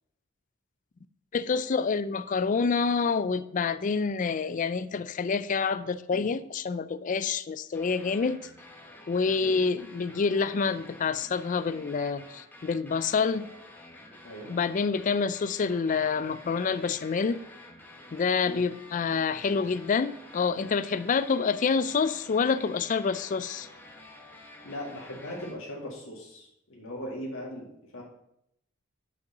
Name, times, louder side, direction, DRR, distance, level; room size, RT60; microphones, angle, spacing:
voice 1, 1.3-8.5 9.1-13.5 14.5-17.4 18.1-23.7, left 5 dB, 35° left, 14 dB, 0.4 m, -27 dB
sound 1, 7.7-25.5, left 1 dB, 10° left, 1.1 m, -50 dB
voice 2, 19.3-19.6 24.6-27.7 27.9-28.0, equal, 65° left, -3 dB, 2.0 m, -39 dB
6.5 x 5.4 x 6.6 m, 0.76 s
head